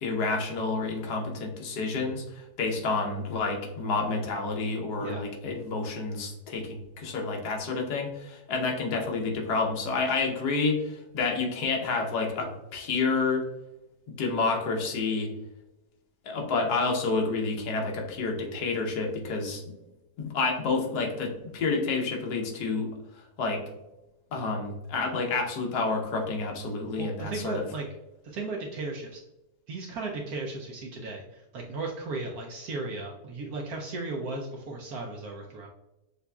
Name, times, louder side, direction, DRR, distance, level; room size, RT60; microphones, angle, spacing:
voice 1, 0.0-13.4 14.1-15.3 16.2-19.7 20.2-22.9 23.4-23.6 24.3-27.6, left 4 dB, 75° left, 1 dB, 1.4 m, -29 dB
voice 2, 27.0-27.9 28.2-29.2 29.7-35.7, right 3 dB, 70° right, 0 dB, 1.1 m, -36 dB
6.6 x 2.5 x 2.3 m, 0.97 s
omnidirectional pair, 1.8 m